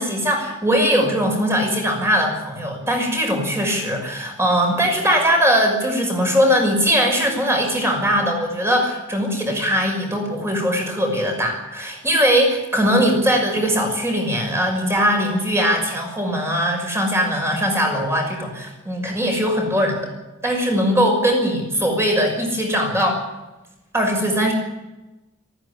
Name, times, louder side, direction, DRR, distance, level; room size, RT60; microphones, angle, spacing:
voice 1, 0.0-20.1 20.4-23.2 23.9-24.5, equal, 15° right, 2 dB, 5.9 m, -20 dB
19.0 x 15.5 x 9.9 m, 1.0 s
head